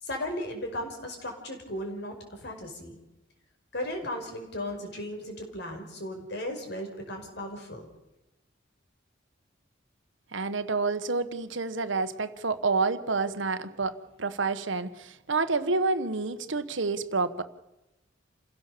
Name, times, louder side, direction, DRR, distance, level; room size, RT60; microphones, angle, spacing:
voice 1, 0.0-2.9 3.7-7.9, left 1 dB, 60° left, 4 dB, 5.4 m, -36 dB
voice 2, 10.3-17.4, right 4 dB, 75° right, 11 dB, 1.3 m, -29 dB
28.0 x 16.5 x 6.9 m, 0.97 s
head